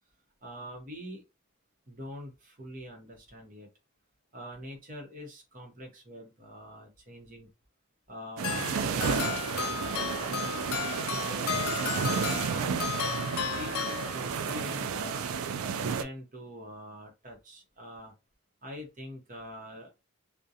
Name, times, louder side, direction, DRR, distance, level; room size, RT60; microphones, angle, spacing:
voice 1, 0.4-1.2 1.9-3.7 4.3-7.5 8.1-10.7 11.0-11.9 12.4-15.3 15.7-18.1 18.6-19.9, equal, 40° right, 2 dB, 0.8 m, -44 dB
sound 1, 8.4-14.6, left 10 dB, 80° left, 0.3 m, -35 dB
sound 2, 8.4-16.0, right 6 dB, 80° right, 0.3 m, -31 dB
2.4 x 2.1 x 2.7 m, 0.26 s
head